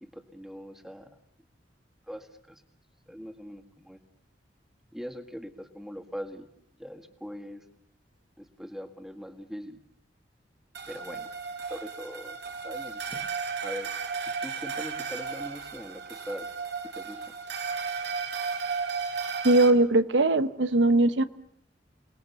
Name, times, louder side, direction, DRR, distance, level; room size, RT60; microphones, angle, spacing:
voice 1, 0.0-1.1 2.1-2.6 3.1-4.0 4.9-6.5 6.8-7.6 8.4-9.8 10.9-11.3 11.7-12.4 12.6-13.3 13.6-13.9 14.4-16.5 16.8-17.3, equal, ahead, 6 dB, 1.8 m, -41 dB
sound 1, 10.7-19.7, right 5 dB, 65° right, 2.0 m, -34 dB
voice 2, 19.4-21.2, right 2 dB, 85° right, 12 dB, 1.0 m, -20 dB
28.5 x 20.0 x 7.0 m, 0.69 s
head